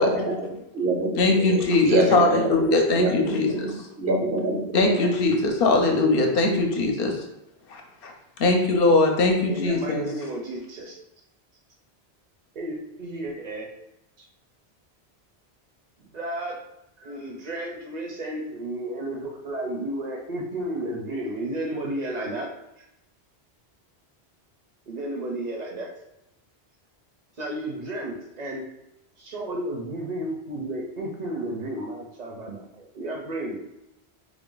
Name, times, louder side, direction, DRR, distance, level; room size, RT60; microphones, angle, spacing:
voice 1, 0.0-0.5 0.7-5.1, right 2 dB, 85° right, 0 dB, 1.0 m, -26 dB
voice 2, 1.2-3.5 4.7-7.2 7.7-8.1 8.4-10.1, left 2 dB, 65° left, 2 dB, 0.8 m, -21 dB
voice 3, 9.5-11.0 12.6-13.7 14.2-14.3 16.0-16.6 17.0-22.5 24.9-25.9 27.4-28.6 29.2-33.6, right 1 dB, 50° right, 0 dB, 0.6 m, -32 dB
3.2 x 2.4 x 3.7 m, 0.85 s
omnidirectional pair, 1.1 m